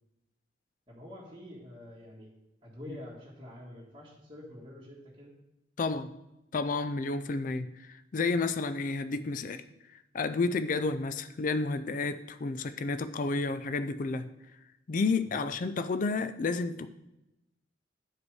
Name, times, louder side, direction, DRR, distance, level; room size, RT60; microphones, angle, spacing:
voice 1, 0.9-2.3 2.6-5.3 15.3-15.5, left 1 dB, 25° right, 1.9 m, -47 dB
voice 2, 5.8-6.1 6.5-9.6 9.9-14.3 14.9-16.9, left 3 dB, 45° left, 0.4 m, -31 dB
11.0 x 5.1 x 4.8 m
head